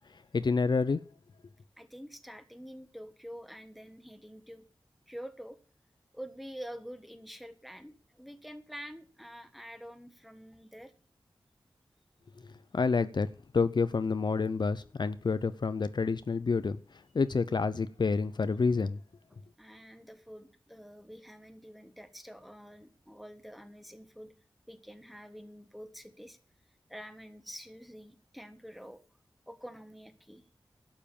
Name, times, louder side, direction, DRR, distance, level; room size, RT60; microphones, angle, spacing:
voice 1, 0.1-1.0 12.4-19.0, left 4 dB, 60° left, 0.6 m, -29 dB
voice 2, 1.8-4.6 5.1-5.6 6.1-10.9 19.3-24.3 24.7-26.4 26.9-29.0 29.5-30.4, equal, ahead, 1.5 m, -47 dB
12.0 x 7.3 x 7.1 m
wide cardioid pair, 95°, 9 cm